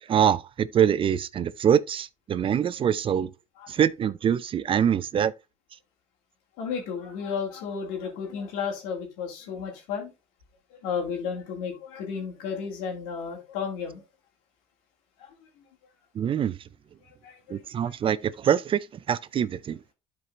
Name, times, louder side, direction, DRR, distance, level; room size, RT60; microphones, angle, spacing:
voice 1, 0.0-3.3 3.7-5.3 16.1-16.6 17.5-19.8, right 9 dB, 40° right, 0.5 m, -24 dB
voice 2, 6.6-10.1 10.7-14.0 15.2-15.3 17.2-17.6, left 6 dB, 75° left, 2.4 m, -33 dB
12.0 x 4.6 x 2.5 m
supercardioid pair, 75°, 14 cm